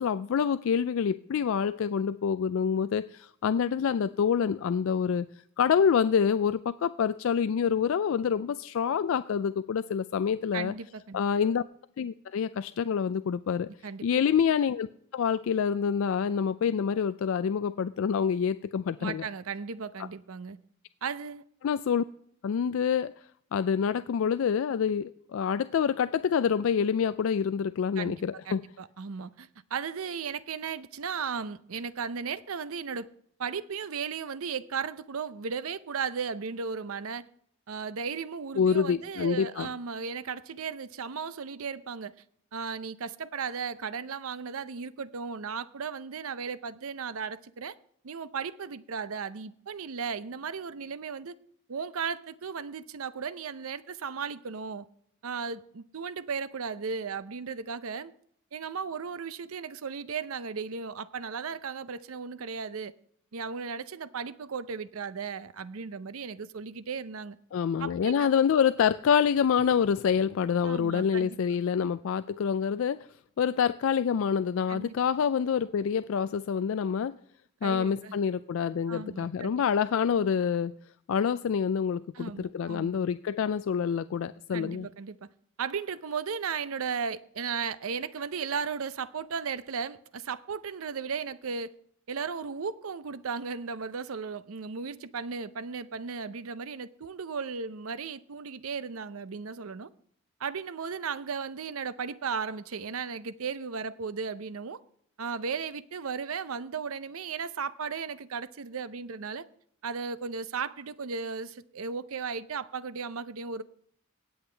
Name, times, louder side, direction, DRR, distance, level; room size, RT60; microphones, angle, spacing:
voice 1, 0.0-5.3 5.6-10.7 11.1-11.6 12.0-13.7 14.0-14.9 15.1-19.2 21.6-22.0 22.4-23.1 23.5-28.6 38.6-39.7 67.5-73.0 73.4-77.1 77.6-80.7 81.1-84.9, left 7 dB, 65° left, 13 dB, 0.3 m, -27 dB
voice 2, 10.5-11.2 13.8-14.1 19.0-20.6 21.0-21.4 28.0-28.2 28.5-33.1 33.4-37.2 37.7-42.1 42.5-47.7 48.0-51.4 51.7-54.9 55.2-58.1 58.5-62.9 63.3-67.4 67.8-68.4 70.6-71.4 74.7-75.0 77.6-78.2 78.9-79.5 82.1-82.9 84.5-85.2 85.6-91.7 92.1-99.9 100.4-104.8 105.2-109.5 109.8-113.6, right 5 dB, 75° right, 15 dB, 0.6 m, -35 dB
18.0 x 7.9 x 3.3 m, 0.65 s
head